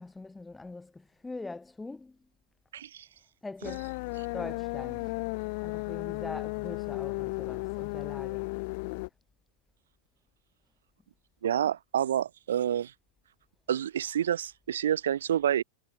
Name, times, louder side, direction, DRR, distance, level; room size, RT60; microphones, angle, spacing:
voice 1, 0.0-2.2 3.4-3.9 4.3-5.2 5.6-8.5, left 3 dB, 5° left, 1.5 m, -42 dB
voice 2, 2.7-3.1 11.4-12.9 13.7-15.6, right 10 dB, 90° right, 0.6 m, -28 dB
sound 1, 3.6-9.1, left 28 dB, 45° left, 1.3 m, -34 dB
supercardioid pair, 155°, 0 cm